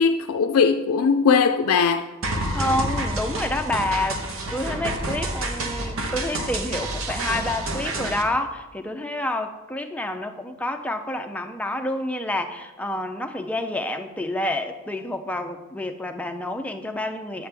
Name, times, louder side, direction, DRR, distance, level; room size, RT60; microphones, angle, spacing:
voice 1, 0.0-2.1, left 5 dB, 80° left, 0.3 m, -19 dB
sound 1, 2.2-8.2, right 2 dB, 75° right, 1.0 m, -28 dB
voice 2, 2.5-17.5, left 1 dB, 5° left, 0.4 m, -28 dB
8.7 x 8.3 x 3.3 m
head